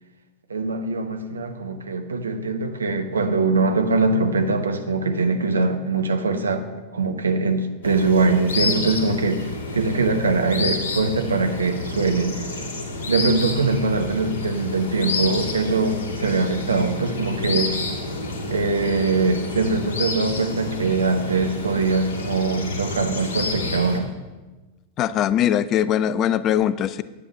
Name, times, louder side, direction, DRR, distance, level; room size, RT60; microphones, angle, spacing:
voice 1, 0.5-6.7 6.9-12.6 13.1-17.7 18.5-24.1, right 3 dB, 75° right, 7 dB, 1.1 m, -22 dB
sound 1, 7.8-24.0, left 2 dB, 60° left, 2.2 m, -29 dB
voice 2, 25.0-27.0, left 10 dB, 35° left, 16 dB, 0.5 m, -21 dB
9.9 x 9.6 x 5.7 m, 1.2 s
figure-of-eight pair, 90°, 0 cm